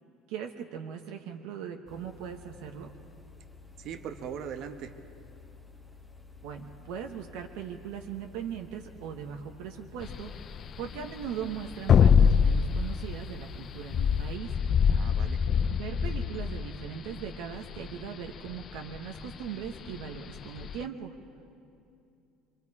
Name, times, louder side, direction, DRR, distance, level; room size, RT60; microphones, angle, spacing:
voice 1, 0.3-2.9 6.4-14.5 15.7-21.2, right 8 dB, 80° right, 3 dB, 1.2 m, -39 dB
sound 1, 1.9-14.4, left 4 dB, 5° left, 1.1 m, -52 dB
voice 2, 3.8-4.9 14.9-15.4, right 8 dB, 50° right, 8 dB, 1.1 m, -40 dB
sound 2, 10.0-20.8, left 7 dB, 30° left, 0.4 m, -25 dB
25.5 x 25.0 x 4.8 m, 2.6 s
cardioid pair, 155°, 0 cm